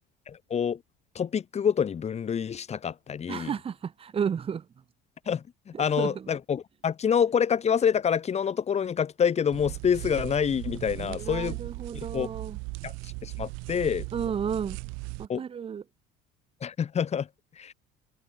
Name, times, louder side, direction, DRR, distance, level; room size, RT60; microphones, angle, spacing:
voice 1, 0.3-0.8 1.1-3.5 5.3-11.6 12.1-12.3 12.8-14.1 15.3-15.4 16.6-17.3 17.6-17.7, left 7 dB, 35° left, 4.6 m, -27 dB
voice 2, 3.3-4.6 5.7-6.3 10.9-12.6 14.1-14.8 15.2-15.8, right 7 dB, 30° right, 1.3 m, -32 dB
sound 1, 9.5-15.3, right 32 dB, 80° right, 7.8 m, -38 dB
cardioid pair, 115°, 20 cm